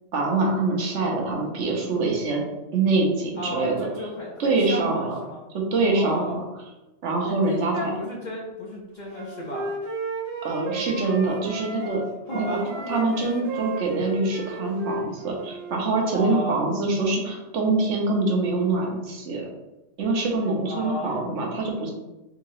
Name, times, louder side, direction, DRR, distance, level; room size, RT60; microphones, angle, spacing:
voice 1, 0.1-2.5 2.7-3.9 4.4-5.1 5.5-6.4 7.0-7.9 10.4-12.0 12.3-12.6 12.9-19.5 20.0-21.9, right 3 dB, 70° right, 0 dB, 1.1 m, -24 dB
voice 2, 3.4-5.4 5.9-6.4 7.2-9.7 12.3-13.0 16.1-16.7 20.7-21.4, left 1 dB, 50° left, -3 dB, 0.6 m, -33 dB
Wind instrument woodwind instrument, 9.1-12.0 12.3-15.8, right 2 dB, 90° right, 1.1 m, -34 dB
3.7 x 2.8 x 3.0 m, 1.0 s
omnidirectional pair, 1.3 m